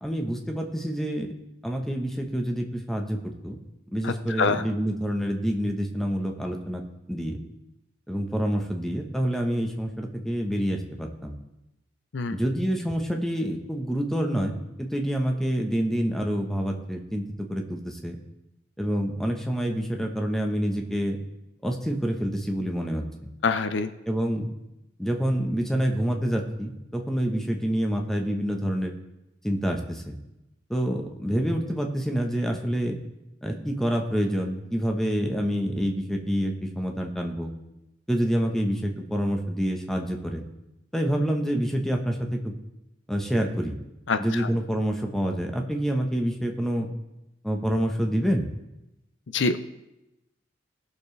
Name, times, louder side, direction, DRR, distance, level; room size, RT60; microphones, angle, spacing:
voice 1, 0.0-1.3 1.6-3.2 3.4-3.6 3.9-6.8 7.1-7.4 8.1-11.4 12.3-18.2 18.8-21.2 21.6-23.0 24.1-24.5 25.0-28.9 29.4-30.1 30.7-33.0 33.4-37.5 38.1-40.4 40.9-42.5 43.1-43.8 44.2-46.9 47.4-48.5, equal, ahead, 2 dB, 1.1 m, -27 dB
voice 2, 4.0-4.6 12.1-12.4 23.4-23.9 44.1-44.5 49.3-49.6, left 4 dB, 75° left, 10 dB, 0.6 m, -25 dB
18.5 x 6.9 x 3.3 m, 0.92 s
head